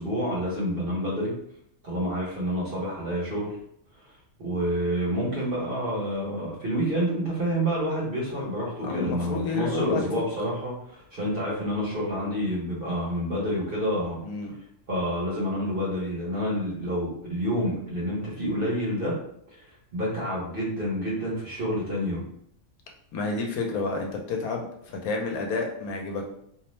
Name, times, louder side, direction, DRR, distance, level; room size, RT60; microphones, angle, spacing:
voice 1, 0.0-1.3 1.8-3.6 4.4-14.2 14.9-19.2 19.5-19.7 19.9-22.3, equal, 50° right, -5 dB, 0.9 m, -28 dB
voice 2, 8.8-10.1 14.2-14.6 23.1-26.2, left 3 dB, 85° left, 2 dB, 1.0 m, -30 dB
2.7 x 2.0 x 3.0 m, 0.70 s
omnidirectional pair, 1.5 m